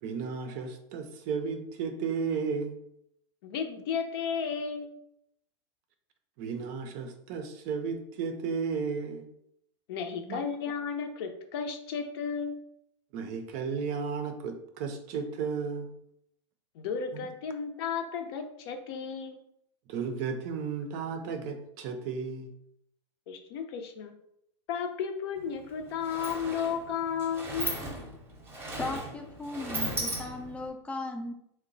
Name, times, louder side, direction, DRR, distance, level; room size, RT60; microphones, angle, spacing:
voice 1, 0.0-2.8 6.4-9.3 10.2-10.4 13.1-15.9 17.1-17.3 19.9-22.5, right 5 dB, 45° right, 6 dB, 0.5 m, -34 dB
voice 2, 3.4-5.0 9.9-12.6 16.7-19.4 23.3-24.1 24.7-27.8, left 6 dB, 55° left, 5 dB, 0.6 m, -33 dB
Sliding door, 25.4-25.5 25.8-30.7, right 1 dB, 15° right, 0.8 m, -37 dB
voice 3, 28.8-31.3, left 2 dB, 10° left, 3 dB, 0.4 m, -37 dB
2.8 x 2.1 x 3.9 m, 0.75 s
hypercardioid pair, 125°, 15 cm